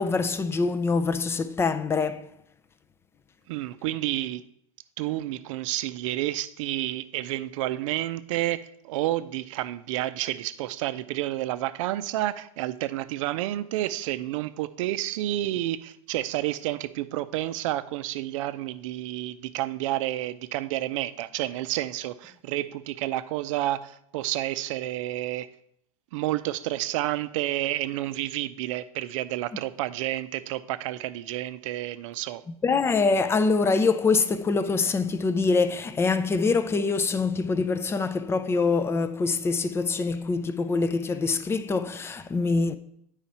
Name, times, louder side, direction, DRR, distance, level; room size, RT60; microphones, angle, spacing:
voice 1, 0.0-2.3 32.6-42.8, left 4 dB, 15° left, 0.4 m, -24 dB
voice 2, 3.5-4.4 5.0-25.5 26.1-32.4, right 15 dB, 60° right, 0.6 m, -30 dB
9.0 x 4.9 x 4.2 m
hypercardioid pair, 115°, 18 cm